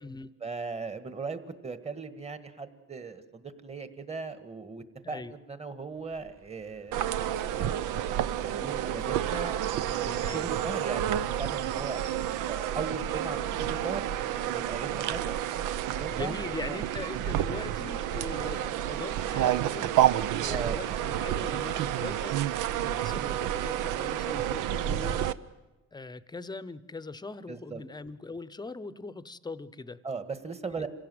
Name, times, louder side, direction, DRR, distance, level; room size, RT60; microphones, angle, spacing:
voice 1, 0.4-7.0 7.5-8.3 8.5-12.0 12.5-15.3 15.9-16.4 16.7-16.8 20.5-20.8 27.5-27.8 30.0-30.9, right 4 dB, 20° right, 10 dB, 1.6 m, -38 dB
Car passing by, 5.9-16.5, right 4 dB, 45° right, 2.6 m, -55 dB
sound 1, 6.9-25.3, right 11 dB, 90° right, 0.8 m, -30 dB
voice 2, 16.1-25.4 25.9-30.0 30.8-30.9, left 3 dB, 15° left, 16 dB, 0.8 m, -41 dB
26.0 x 17.0 x 7.8 m, 1.1 s
cardioid pair, 105°, 30 cm